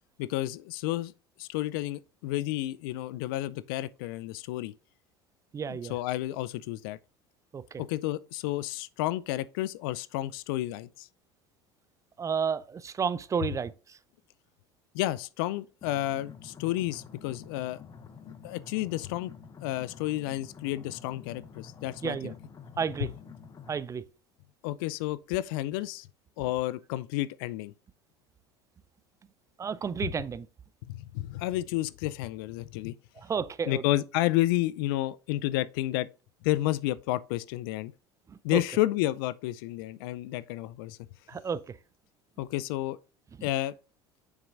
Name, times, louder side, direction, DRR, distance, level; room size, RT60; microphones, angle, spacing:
voice 1, 0.2-1.1 1.4-4.7 5.7-7.0 7.8-11.1 14.9-17.8 18.4-19.3 19.6-22.3 24.6-26.1 26.4-27.7 30.9-32.9 33.7-36.1 36.4-37.9 38.4-41.0 42.4-43.0 43.4-43.7, left 16 dB, 65° left, 0.4 m, -31 dB
voice 2, 5.5-5.9 7.5-7.8 12.2-14.0 22.0-22.3 22.8-23.1 23.7-24.1 29.6-30.5 33.2-33.8 38.3-38.6 41.3-41.8 43.4-43.5, right 6 dB, 25° right, 0.5 m, -32 dB
sound 1, 15.8-23.8, left 6 dB, 30° left, 1.0 m, -48 dB
7.3 x 6.0 x 2.5 m
hypercardioid pair, 70°, 13 cm